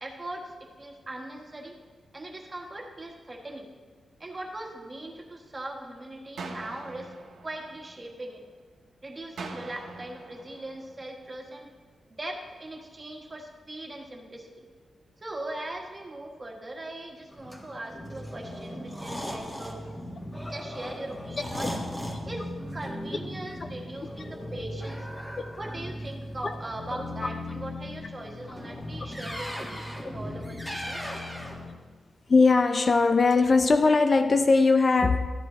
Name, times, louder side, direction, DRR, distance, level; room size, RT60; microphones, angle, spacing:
voice 1, 0.0-1.8 2.1-3.7 4.2-7.1 7.4-8.4 9.0-11.7 12.1-14.7 15.2-19.8 20.4-21.7 22.2-25.1 25.6-31.2, right 1 dB, 25° right, 1.5 m, -40 dB
sound 1, 6.4-8.4 9.4-11.4, right 3 dB, 90° right, 1.2 m, -43 dB
sound 2, 17.3-31.7, left 1 dB, 5° left, 1.7 m, -37 dB
voice 2, 32.3-35.3, left 4 dB, 40° left, 0.5 m, -20 dB
14.0 x 10.0 x 3.1 m
wide cardioid pair, 115°, 0 cm